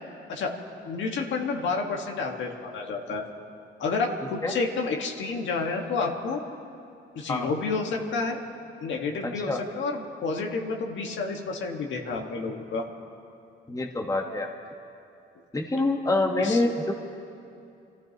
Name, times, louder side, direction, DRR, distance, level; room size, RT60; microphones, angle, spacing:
voice 1, 0.8-3.2 3.8-6.4 7.1-8.4 8.8-12.9 16.4-16.6, left 4 dB, 70° left, 1 dB, 1.7 m, -30 dB
voice 2, 9.2-9.6 13.7-14.5 15.5-16.9, left 2 dB, 15° left, 2 dB, 1.3 m, -26 dB
28.5 x 14.5 x 3.0 m, 2.6 s
cardioid pair, 90°, 20 cm